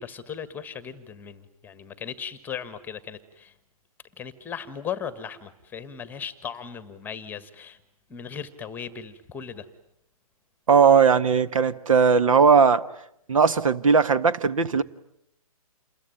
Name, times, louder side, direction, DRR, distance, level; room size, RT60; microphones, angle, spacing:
voice 1, 0.0-3.5 4.2-7.8 8.1-9.7, left 7 dB, 10° left, 14 dB, 1.4 m, -37 dB
voice 2, 10.7-12.8 13.3-14.8, right 6 dB, 60° right, 13 dB, 1.4 m, -18 dB
28.5 x 22.0 x 9.0 m, 0.74 s
figure-of-eight pair, 140°, 19 cm